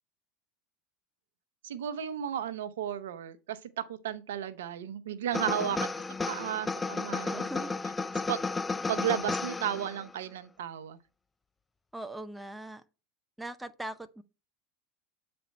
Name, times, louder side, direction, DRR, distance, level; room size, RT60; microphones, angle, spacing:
voice 1, 1.6-5.9 6.3-7.7 8.3-8.4 8.9-11.0, right 9 dB, 75° right, 0.7 m, -34 dB
sound 1, 5.3-10.1, left 3 dB, 15° left, 0.3 m, -33 dB
voice 2, 5.5-5.9 7.3-7.7 11.9-12.8 13.4-14.2, right 1 dB, 5° right, 0.7 m, -41 dB
8.0 x 4.3 x 4.3 m
hypercardioid pair, 85°, 0 cm